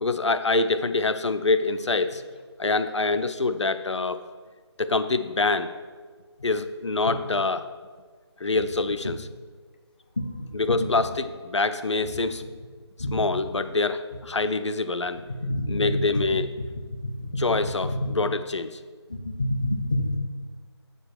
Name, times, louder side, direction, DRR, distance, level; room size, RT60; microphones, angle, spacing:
voice 1, 0.0-2.2 2.6-4.2 4.8-5.7 6.4-7.7 8.4-9.3 10.5-12.4 13.1-15.2 15.7-16.5 17.4-18.7, left 3 dB, 90° left, 11 dB, 0.6 m, -25 dB
voice 2, 15.4-15.9 17.2-17.4 17.8-18.0 19.4-20.2, left 1 dB, 20° left, 3 dB, 0.4 m, -26 dB
6.8 x 6.7 x 4.6 m, 1.5 s
figure-of-eight pair, 165°, 15 cm